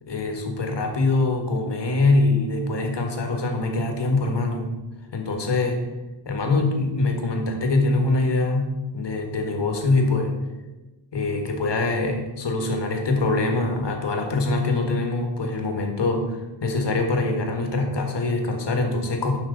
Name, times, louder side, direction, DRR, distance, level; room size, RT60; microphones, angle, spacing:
voice 1, 0.0-4.7 5.1-5.8 6.2-10.3 11.1-19.4, left 2 dB, 65° left, 3 dB, 1.6 m, -23 dB
11.0 x 5.7 x 3.9 m, 1.1 s
wide cardioid pair, 120°, 46 cm